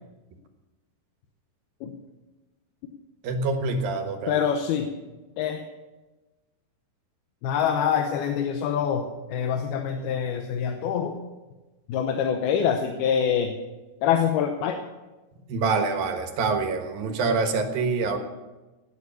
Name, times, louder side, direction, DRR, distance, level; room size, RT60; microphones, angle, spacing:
voice 1, 3.2-4.4 15.5-18.2, right 4 dB, 70° right, 5 dB, 3.1 m, -26 dB
voice 2, 4.3-4.9 5.4-5.6 7.4-11.1 11.9-13.5 14.0-14.8, left 8 dB, 80° left, 5 dB, 2.9 m, -25 dB
18.0 x 9.7 x 7.0 m, 1.1 s
omnidirectional pair, 4.4 m